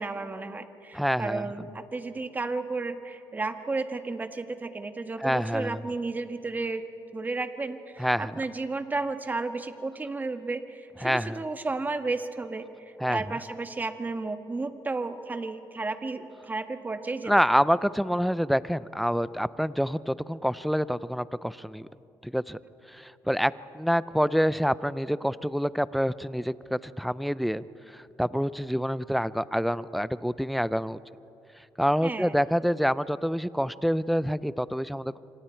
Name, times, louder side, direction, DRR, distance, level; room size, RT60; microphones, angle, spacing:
voice 1, 0.0-6.8 7.1-12.6 13.1-17.3 32.0-32.4, right 3 dB, 20° right, 8 dB, 1.4 m, -33 dB
voice 2, 0.9-1.5 5.2-5.8 8.0-8.3 11.0-11.4 13.0-13.2 17.3-21.9 22.2-22.6 22.9-31.0 31.8-35.2, equal, ahead, 17 dB, 0.5 m, -27 dB
27.5 x 25.5 x 4.5 m, 2.8 s
cardioid pair, 105°, 8 cm